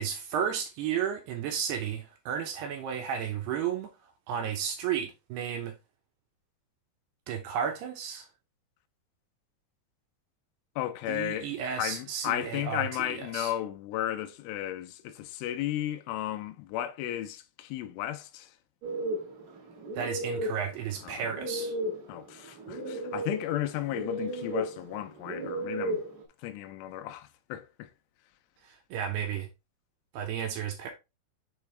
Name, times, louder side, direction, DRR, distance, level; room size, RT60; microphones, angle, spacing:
voice 1, 0.0-3.9 4.3-5.8 7.3-8.3 11.1-13.1 13.3-13.5 20.0-21.7 28.9-29.5 30.1-30.9, right 8 dB, 75° right, 2.6 m, -33 dB
voice 2, 10.8-11.5 11.8-18.5 21.0-21.2 22.1-26.0 26.4-27.9, left 13 dB, 90° left, 3.2 m, -34 dB
sound 1, 18.8-26.2, right 1 dB, 50° right, 2.4 m, -35 dB
7.1 x 4.7 x 3.3 m
omnidirectional pair, 5.4 m